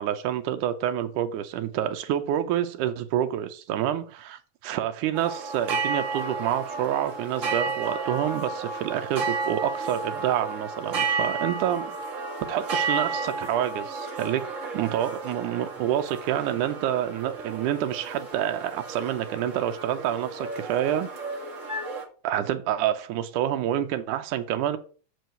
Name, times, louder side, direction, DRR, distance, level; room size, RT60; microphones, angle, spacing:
voice 1, 0.0-12.0 12.5-14.5 14.7-21.1 22.2-24.8, right 11 dB, 85° right, 2.3 m, -28 dB
sound 1, 5.1-22.0, right 4 dB, 35° right, 1.3 m, -32 dB
7.2 x 4.6 x 6.6 m
omnidirectional pair, 3.5 m